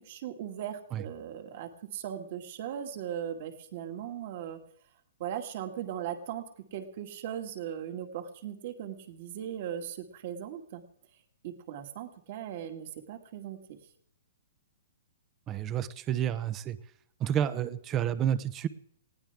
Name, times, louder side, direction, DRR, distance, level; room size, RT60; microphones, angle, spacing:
voice 1, 0.0-4.6 5.2-6.4 6.7-10.8 11.4-13.8, right 10 dB, 45° right, 6 dB, 2.1 m, -38 dB
voice 2, 15.5-16.8 17.2-18.7, right 10 dB, 20° right, 14 dB, 0.8 m, -30 dB
19.5 x 16.5 x 3.6 m, 0.66 s
hypercardioid pair, 155°, 0 cm